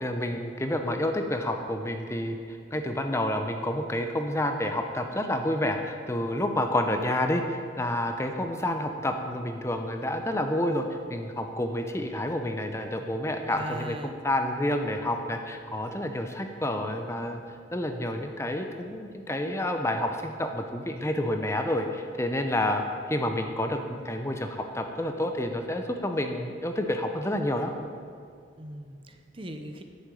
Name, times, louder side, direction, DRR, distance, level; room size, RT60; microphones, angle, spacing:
voice 1, 0.0-17.4 17.7-22.8 23.1-27.7, left 1 dB, 15° left, 5 dB, 0.7 m, -29 dB
voice 2, 13.5-14.1 28.6-29.8, right 1 dB, 30° right, 6 dB, 0.8 m, -39 dB
10.5 x 7.8 x 9.2 m, 2.3 s
head